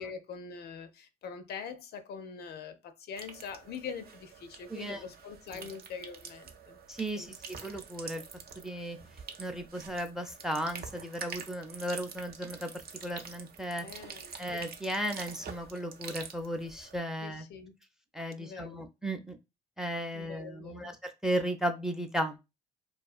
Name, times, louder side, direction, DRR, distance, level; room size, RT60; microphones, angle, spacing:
voice 1, 0.0-6.8 7.1-7.4 13.8-14.3 17.2-17.8 18.4-18.9 20.1-20.9, left 6 dB, 60° left, 0.4 m, -43 dB
sound 1, 3.2-17.0, right 6 dB, 55° right, 0.5 m, -47 dB
voice 2, 6.9-8.2 8.6-9.0 9.4-12.7 13.0-13.9 14.4-17.5 18.1-19.4 19.8-22.4, right 1 dB, ahead, 0.4 m, -35 dB
2.3 x 2.2 x 2.3 m
supercardioid pair, 60°, 19 cm